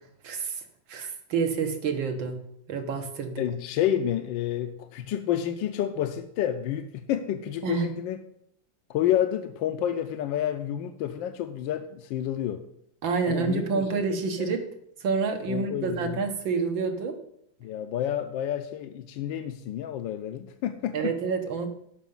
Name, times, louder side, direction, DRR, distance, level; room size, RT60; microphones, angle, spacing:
voice 1, 0.2-0.6 0.9-2.4 2.7-3.4 7.6-7.9 13.0-14.6 15.0-17.2 20.9-21.7, right 5 dB, 90° right, 5 dB, 2.1 m, -28 dB
voice 2, 3.4-8.2 8.9-12.7 13.2-14.0 14.4-14.5 15.5-16.2 17.6-21.2, left 10 dB, 85° left, 8 dB, 1.4 m, -29 dB
13.0 x 5.8 x 5.5 m, 0.71 s
omnidirectional pair, 2.1 m